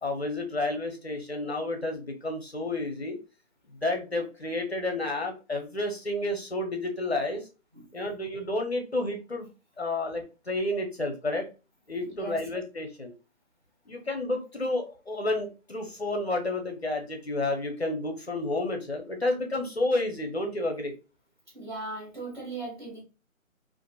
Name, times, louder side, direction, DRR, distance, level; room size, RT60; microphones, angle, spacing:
voice 1, 0.0-3.2 3.8-7.5 7.9-9.5 9.8-11.5 11.9-13.1 13.9-20.9, left 2 dB, 50° left, 4 dB, 0.5 m, -30 dB
voice 2, 12.0-12.4 21.5-23.0, right 3 dB, 35° right, -3 dB, 0.9 m, -38 dB
2.7 x 2.4 x 2.2 m, 0.31 s
hypercardioid pair, 175°, 42 cm